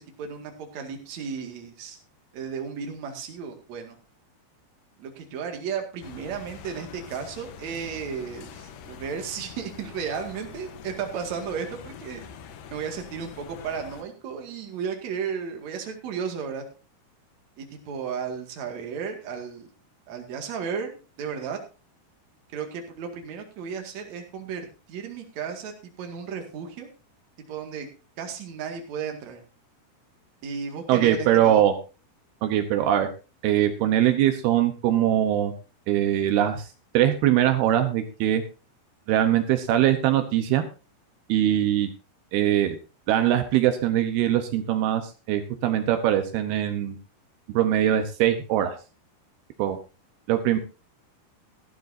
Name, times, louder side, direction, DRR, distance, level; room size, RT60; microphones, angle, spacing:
voice 1, 0.0-2.0 2.3-4.0 5.0-12.2 12.7-16.6 17.6-19.7 20.1-20.9 21.2-21.6 22.5-26.9 27.5-27.9 28.2-29.4 30.4-31.6, right 6 dB, 50° right, 4 dB, 3.0 m, -34 dB
sound 1, 6.0-14.0, left 7 dB, 70° left, 2.6 m, -44 dB
voice 2, 30.9-31.8 32.4-33.1 33.4-35.5 35.9-38.4 39.1-40.7 41.3-41.9 42.3-42.8 43.1-47.0 47.5-48.8 49.6-49.8 50.3-50.6, right 11 dB, 80° right, 8 dB, 2.9 m, -22 dB
16.0 x 12.5 x 2.7 m, 0.32 s
omnidirectional pair, 4.5 m